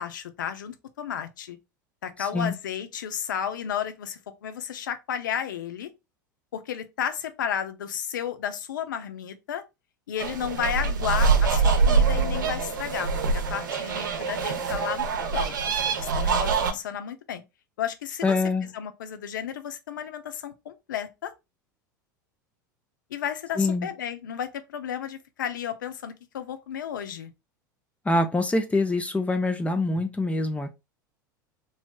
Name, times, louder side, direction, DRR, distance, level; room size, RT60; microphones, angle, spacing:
voice 1, 0.0-1.6 2.0-5.9 6.5-9.6 10.1-15.6 16.0-17.4 17.8-18.3 18.7-21.3 23.1-27.3, left 9 dB, 75° left, 0.5 m, -33 dB
voice 2, 2.2-2.5 18.2-18.7 23.6-23.9 28.1-30.7, left 2 dB, 10° left, 0.5 m, -25 dB
sound 1, 10.2-16.7, right 4 dB, 75° right, 0.6 m, -24 dB
3.0 x 2.7 x 2.2 m
hypercardioid pair, 85°, 10 cm